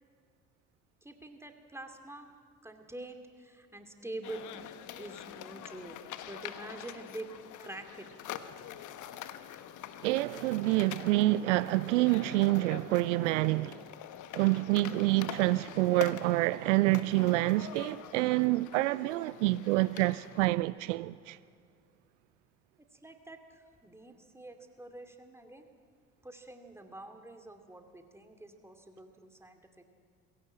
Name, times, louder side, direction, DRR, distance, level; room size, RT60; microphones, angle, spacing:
voice 1, 1.0-2.3 2.6-4.5 5.0-6.0 6.3-7.3 7.6-8.1 23.0-23.4 23.8-25.7 26.2-29.8, right 2 dB, 5° right, 2.6 m, -46 dB
sound 1, 4.2-20.4, left 11 dB, 50° left, 1.2 m, -45 dB
voice 2, 10.0-13.8 14.3-21.4, right 19 dB, 70° right, 0.5 m, -27 dB
21.0 x 17.0 x 7.8 m
figure-of-eight pair, 55°, 37 cm